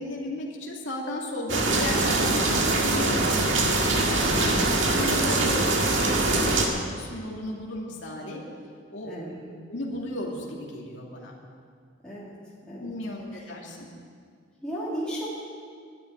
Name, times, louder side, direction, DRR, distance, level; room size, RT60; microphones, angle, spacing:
voice 1, 0.0-3.4 3.7-4.7 4.9-8.4 8.9-11.4 12.8-13.9, left 1 dB, 70° left, -2 dB, 2.4 m, -35 dB
sound 1, 1.5-6.7, right 2 dB, 70° right, 1.9 m, -23 dB
voice 2, 12.0-12.4 12.7-12.9 13.3-13.5 14.6-15.3, right 1 dB, 5° left, -8 dB, 2.9 m, -35 dB
11.5 x 10.5 x 9.5 m, 2.1 s
head